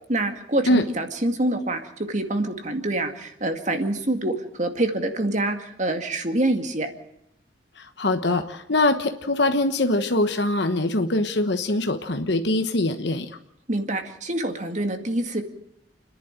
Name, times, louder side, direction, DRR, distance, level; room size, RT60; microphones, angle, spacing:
voice 1, 0.1-1.8 2.1-6.9 13.7-15.4, right 1 dB, 40° right, 6 dB, 2.2 m, -26 dB
voice 2, 7.8-13.3, left 2 dB, 65° left, 7 dB, 1.2 m, -23 dB
29.5 x 11.0 x 8.8 m, 0.80 s
head